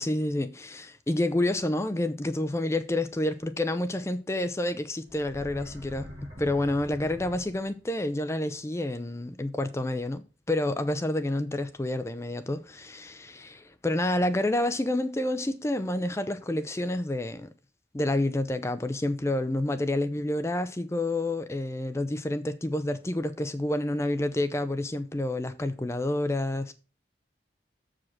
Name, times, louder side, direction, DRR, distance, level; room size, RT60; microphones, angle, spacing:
voice 1, 0.0-6.1 6.4-17.5 17.9-26.7, left 1 dB, 15° left, 0.4 m, -29 dB
sound 1, 5.1-7.9, equal, 30° right, 3.0 m, -42 dB
7.3 x 5.0 x 6.2 m
head